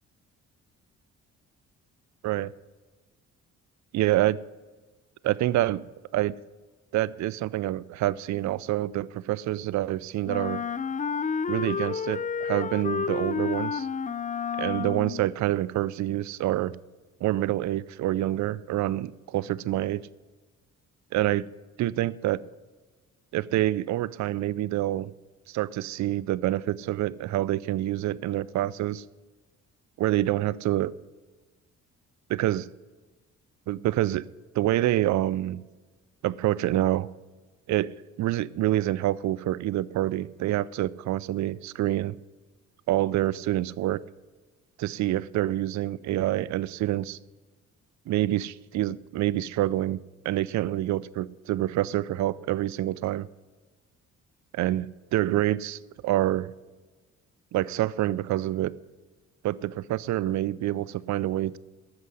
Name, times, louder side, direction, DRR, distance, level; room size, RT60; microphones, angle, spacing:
voice 1, 3.9-4.4 5.2-5.8 6.1-6.3 6.9-10.6 11.5-13.9 14.6-16.8 17.2-20.0 21.1-21.4 21.8-22.4 23.3-25.1 25.5-29.0 30.0-30.9 32.3-32.7 33.7-34.3 34.5-35.6 36.2-37.1 37.7-37.9 38.2-42.2 42.9-44.0 44.8-47.2 48.1-53.3 54.5-56.5 57.5-58.7 59.4-61.6, right 14 dB, 65° right, 0.5 m, -27 dB
Wind instrument woodwind instrument, 10.3-15.3, left 6 dB, 25° left, 0.5 m, -30 dB
14.0 x 6.4 x 9.6 m
cardioid pair, 90°, 30 cm